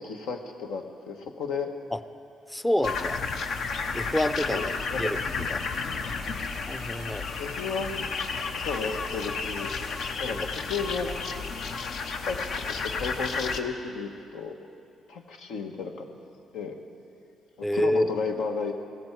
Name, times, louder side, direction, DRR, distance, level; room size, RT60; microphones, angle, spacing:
voice 1, 0.0-1.7 4.5-5.1 7.4-8.1 8.6-9.7 10.2-11.1 12.2-14.5 15.1-16.1 16.5-16.8 17.6-18.7, left 5 dB, 85° left, 4 dB, 1.2 m, -33 dB
voice 2, 2.5-3.2 3.9-5.2 5.5-5.6 6.7-7.3 10.3-10.5 17.6-18.0, left 1 dB, 10° left, 12 dB, 0.5 m, -27 dB
sound 1, 2.8-13.6, left 4 dB, 65° left, 0.8 m, -32 dB
16.5 x 14.0 x 4.6 m, 2.5 s
cardioid pair, 90°, 0 cm